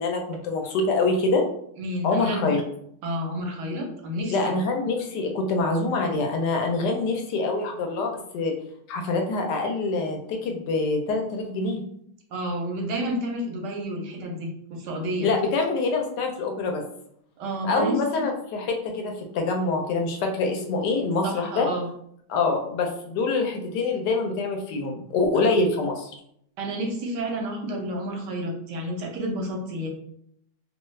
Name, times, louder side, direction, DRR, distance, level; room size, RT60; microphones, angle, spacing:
voice 1, 0.0-1.4 2.0-2.6 4.3-8.5 8.9-11.8 15.2-16.8 17.7-21.7 22.3-26.1, left 3 dB, 75° left, 3 dB, 1.1 m, -25 dB
voice 2, 1.8-2.4 3.0-4.5 12.3-15.3 17.4-18.0 21.2-21.9 26.6-29.9, right 1 dB, 75° right, 1 dB, 1.2 m, -30 dB
3.0 x 2.3 x 3.1 m, 0.72 s
omnidirectional pair, 1.9 m